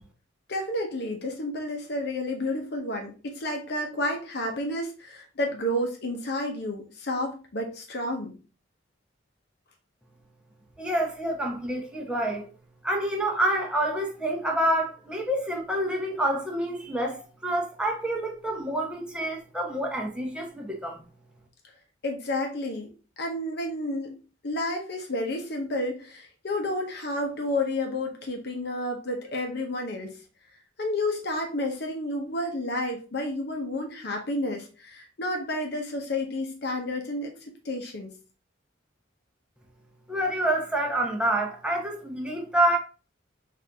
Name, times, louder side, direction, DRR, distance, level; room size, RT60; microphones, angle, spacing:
voice 1, 0.5-8.4 22.0-22.9 23.2-24.2 24.4-30.1 30.8-37.3 37.6-38.1, left 1 dB, 60° left, 0.7 m, -30 dB
voice 2, 10.8-12.5 12.8-21.0 40.1-42.8, right 1 dB, 5° right, 0.8 m, -27 dB
4.3 x 2.6 x 3.3 m
head